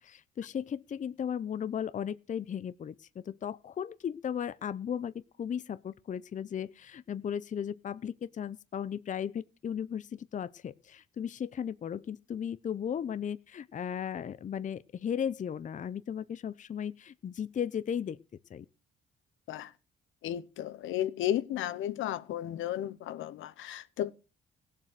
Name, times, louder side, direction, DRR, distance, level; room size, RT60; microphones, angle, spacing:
voice 1, 0.0-5.1 5.4-18.2 18.5-18.7, left 8 dB, 40° left, 0.6 m, -36 dB
voice 2, 20.2-24.1, left 12 dB, 80° left, 0.9 m, -33 dB
16.5 x 7.5 x 6.5 m
cardioid pair, 90°, 20 cm